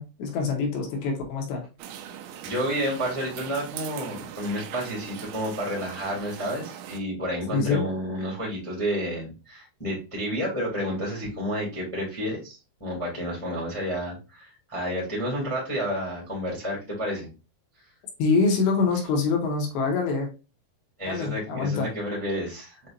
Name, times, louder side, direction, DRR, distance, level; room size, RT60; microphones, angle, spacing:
voice 1, 0.0-1.7 7.5-7.9 18.2-20.3 21.1-21.9, left 4 dB, 75° left, 2 dB, 3.0 m, -25 dB
sound 1, 1.8-7.0, right 9 dB, 85° right, 3.1 m, -40 dB
voice 2, 2.4-17.3 21.0-22.9, equal, 10° left, -4 dB, 0.8 m, -30 dB
7.5 x 2.8 x 2.5 m, 0.30 s
omnidirectional pair, 5.6 m